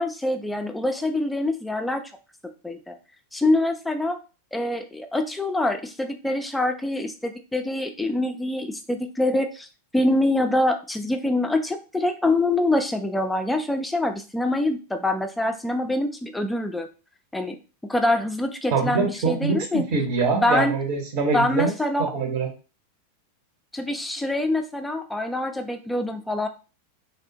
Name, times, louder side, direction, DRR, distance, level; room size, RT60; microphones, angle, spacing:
voice 1, 0.0-2.0 2.6-3.0 3.3-4.2 4.5-9.7 9.9-16.9 17.3-17.6 17.9-19.9 20.3-20.7 21.3-22.1 23.7-26.5, left 1 dB, 5° left, 6 dB, 0.4 m, -25 dB
voice 2, 18.7-21.7 22.0-22.5, right 4 dB, 45° right, 3 dB, 0.7 m, -24 dB
3.3 x 2.1 x 2.7 m, 0.34 s
figure-of-eight pair, 90°, 0 cm